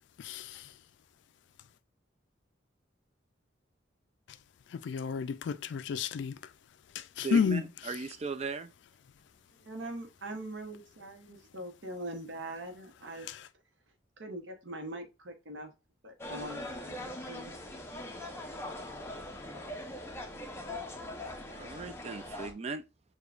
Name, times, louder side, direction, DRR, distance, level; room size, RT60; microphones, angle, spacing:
voice 1, 0.2-0.6 4.7-6.4 7.0-7.6, left 6 dB, 70° left, 0.3 m, -31 dB
voice 2, 7.2-8.7 21.5-22.8, right 4 dB, 35° right, 0.3 m, -37 dB
voice 3, 9.6-13.3 14.2-15.7 16.0-17.5, right 1 dB, 80° right, 0.8 m, -42 dB
sound 1, 16.2-22.5, left 1 dB, 15° left, 0.6 m, -41 dB
6.8 x 2.3 x 2.4 m
head